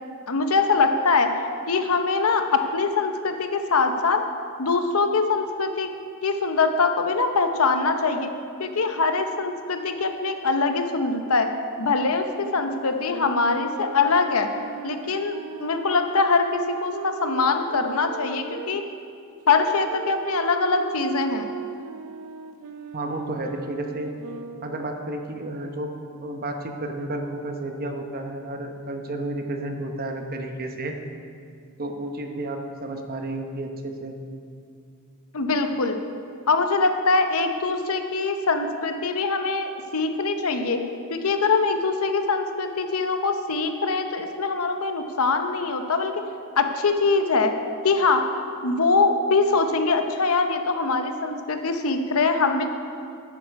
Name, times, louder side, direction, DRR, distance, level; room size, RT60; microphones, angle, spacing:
voice 1, 0.3-1.3 1.7-4.2 4.6-5.9 6.2-8.3 8.6-11.5 11.8-14.5 14.8-18.8 19.5-21.5 35.3-36.0 36.5-40.8 41.1-46.1 46.6-47.5 47.8-48.2 48.6-52.7, left 4 dB, 70° left, 6 dB, 0.8 m, -23 dB
sound 1, 12.9-18.7 19.4-24.9, right 6 dB, 75° right, 0.5 m, -38 dB
voice 2, 22.9-24.1 24.6-25.9 26.2-31.0 31.8-34.2, right 1 dB, 40° right, 4 dB, 0.9 m, -31 dB
11.5 x 8.8 x 4.7 m, 2.4 s
head